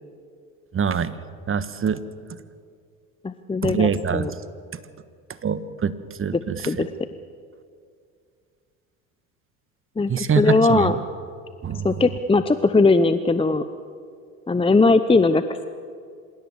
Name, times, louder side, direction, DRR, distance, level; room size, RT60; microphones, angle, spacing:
voice 1, 0.7-1.1 1.5-2.0 3.6-4.3 5.4-5.9 6.2-6.8 10.1-10.9 11.6-11.9, right 6 dB, 30° right, 13 dB, 1.4 m, -24 dB
voice 2, 3.2-4.3 6.7-6.9 10.0-11.0 11.8-13.6 14.5-15.6, left 3 dB, 15° left, 11 dB, 0.9 m, -19 dB
27.0 x 17.0 x 7.5 m, 2.3 s
hypercardioid pair, 75°, 42 cm